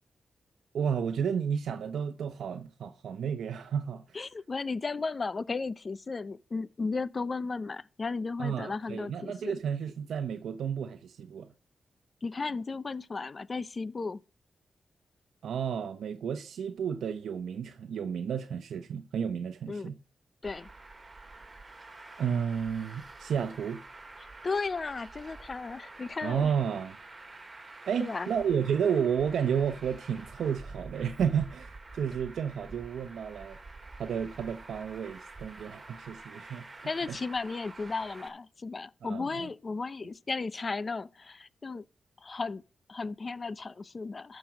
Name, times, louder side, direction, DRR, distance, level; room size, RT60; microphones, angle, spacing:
voice 1, 0.7-4.2 8.4-11.5 15.4-20.0 22.2-23.8 26.2-27.0 27.9-33.6 34.0-36.6 37.1-37.2 39.0-39.5, right 7 dB, 90° right, 0.7 m, -32 dB
voice 2, 4.1-9.6 12.2-14.2 19.7-19.9 20.4-20.7 24.4-26.5 28.0-28.3 36.8-41.8 42.2-42.6 42.9-44.4, left 4 dB, 40° left, 0.6 m, -35 dB
Traffic noise roadway noise, 20.4-38.3, right 3 dB, 30° right, 2.1 m, -48 dB
13.0 x 6.1 x 5.1 m
cardioid pair, 90°, 0 cm